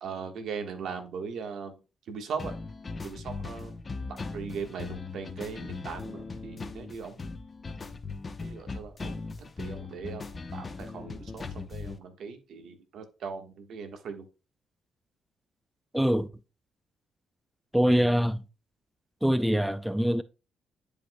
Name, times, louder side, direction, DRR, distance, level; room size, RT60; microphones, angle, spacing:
voice 1, 0.0-1.8 2.1-2.5 3.0-3.7 4.3-7.2 8.4-9.2 9.6-10.2 10.5-14.2, right 6 dB, 70° right, 1.3 m, -39 dB
sound 1, 2.4-12.0, left 4 dB, 35° left, 0.8 m, -39 dB
voice 2, 15.9-16.3 17.7-18.4 19.2-20.2, equal, 5° right, 0.4 m, -24 dB
10.0 x 5.1 x 2.2 m
cardioid pair, 90°, 0 cm